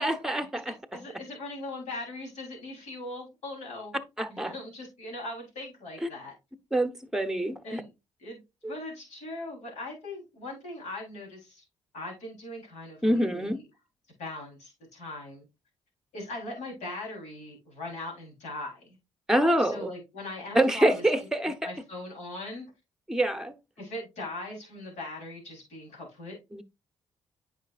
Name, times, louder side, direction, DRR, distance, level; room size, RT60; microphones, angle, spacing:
voice 1, 0.0-1.0 4.2-4.5 6.0-6.1 6.7-7.8 8.6-8.7 13.0-13.6 19.3-19.9 20.5-21.7 23.1-23.5 26.5-26.6, right 1 dB, 5° right, 0.9 m, -26 dB
voice 2, 0.9-4.0 4.3-6.3 7.6-7.9 8.2-11.6 11.9-13.6 14.2-15.5 16.1-19.0 19.6-21.0 21.6-22.6 23.8-26.4, left 2 dB, 70° left, 3.6 m, -40 dB
8.7 x 5.0 x 2.4 m
supercardioid pair, 55°, 12 cm